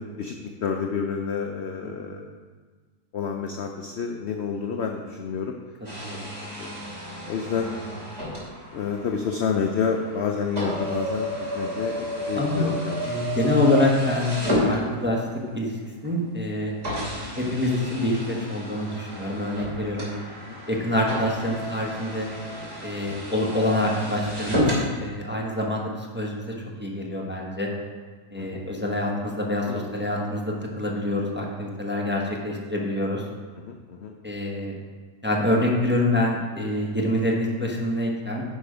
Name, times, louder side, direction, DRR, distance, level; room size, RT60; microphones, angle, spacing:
voice 1, 0.0-2.2 3.1-5.5 6.6-6.7 7.3-7.7 8.7-11.3 11.5-13.3 20.4-20.6 28.4-28.6 29.7-29.8 33.6-34.1, left 6 dB, 65° left, 3 dB, 0.6 m, -29 dB
sound 1, 5.8-15.3 16.0-16.1 16.8-24.9, equal, 40° right, 3.1 m, -32 dB
voice 2, 12.3-12.7 13.0-15.2 15.5-15.8 16.0-16.7 17.4-20.1 20.7-22.3 22.8-24.7 25.0-26.4 26.8-27.7 28.3-33.2 34.2-34.7 35.2-38.4, left 1 dB, 10° right, -2 dB, 0.9 m, -26 dB
10.0 x 5.1 x 5.0 m, 1.5 s
omnidirectional pair, 1.8 m